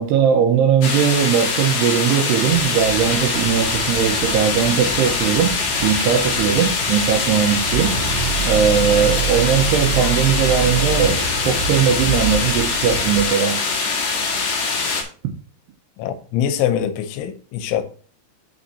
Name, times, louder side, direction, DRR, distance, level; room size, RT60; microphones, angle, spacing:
voice 1, 0.0-8.0 8.4-13.6, right 8 dB, 75° right, 2.6 m, -19 dB
sound 1, 0.8-15.0, left 4 dB, 55° left, 2.1 m, -23 dB
Boat Water vehicle, 2.5-13.3, right 5 dB, 55° right, 4.0 m, -27 dB
voice 2, 16.0-17.8, left 10 dB, 80° left, 3.1 m, -23 dB
8.2 x 7.0 x 2.8 m
omnidirectional pair, 5.5 m